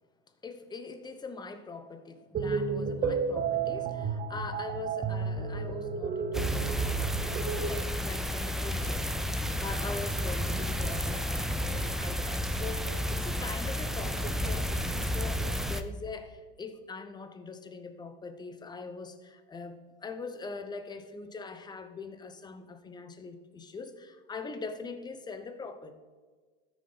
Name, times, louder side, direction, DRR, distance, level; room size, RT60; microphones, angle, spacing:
voice 1, 0.4-9.1 9.6-26.0, left 4 dB, 15° left, 9 dB, 0.9 m, -42 dB
sound 1, 2.3-7.7, right 5 dB, 25° right, 0.8 m, -31 dB
sound 2, 6.3-15.8, equal, ahead, 0.4 m, -31 dB
13.5 x 6.6 x 4.0 m, 1.5 s
supercardioid pair, 120°, 31 cm